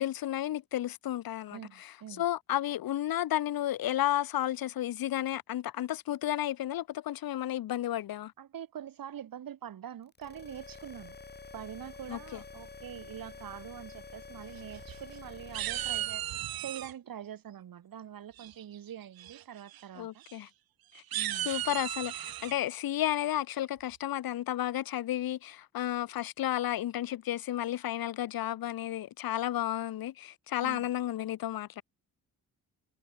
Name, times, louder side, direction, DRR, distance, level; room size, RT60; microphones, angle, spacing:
voice 1, 0.0-8.3 12.1-12.4 20.0-20.5 20.9-21.0 21.4-31.8, left 13 dB, 75° left, 1.4 m, -32 dB
voice 2, 1.5-2.2 8.4-11.2 11.5-16.3 16.6-20.2 21.1-21.5 30.6-30.9, right 9 dB, 70° right, 6.9 m, -44 dB
sound 1, 10.1-16.1, left 4 dB, 30° left, 4.1 m, -48 dB
sound 2, 14.6-15.2 15.5-16.9 18.4-18.8 19.2-19.4 19.7-19.8 20.2-20.3 20.9-22.5, right 14 dB, 90° right, 1.8 m, -36 dB
cardioid pair, 80°, 35 cm